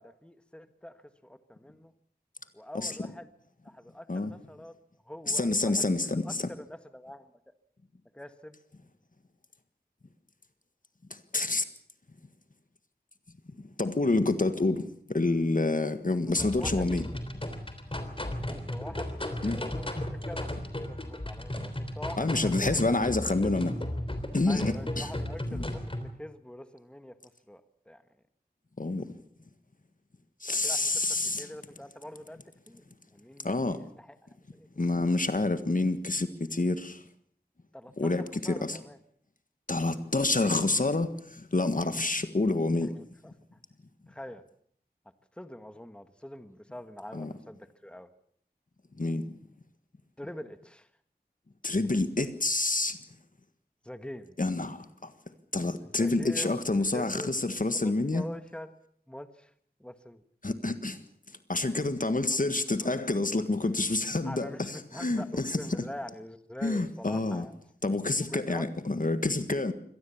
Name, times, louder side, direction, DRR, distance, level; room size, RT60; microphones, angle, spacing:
voice 1, 0.0-1.9 2.5-3.3 3.6-4.7 5.0-7.3 8.1-8.6 16.3-16.9 18.4-23.7 24.5-28.0 30.6-32.4 32.7-32.8 33.1-34.2 34.5-34.7 37.7-39.0 42.8-43.6 44.1-44.4 45.4-48.1 50.2-50.9 53.8-54.4 55.8-56.6 56.9-57.4 57.8-58.8 59.1-59.5 59.8-60.2 62.8-63.0 63.6-63.7 64.2-67.5 68.3-68.7, left 1 dB, 5° left, 1.5 m, -45 dB
voice 2, 5.3-6.4 11.3-11.6 13.8-17.1 19.4-19.6 22.2-23.7 24.3-25.1 25.5-25.6 28.8-29.1 30.4-31.5 33.4-33.8 34.8-37.0 38.0-38.8 39.7-42.9 47.1-47.3 49.0-49.2 51.6-53.0 54.4-55.1 55.5-58.2 60.4-61.0 61.5-65.8 66.6-67.4 67.8-69.7, left 2 dB, 55° left, 1.6 m, -28 dB
sound 1, 16.4-26.1, left 1 dB, 35° left, 3.4 m, -35 dB
24.5 x 18.5 x 7.2 m
wide cardioid pair, 55°, 17 cm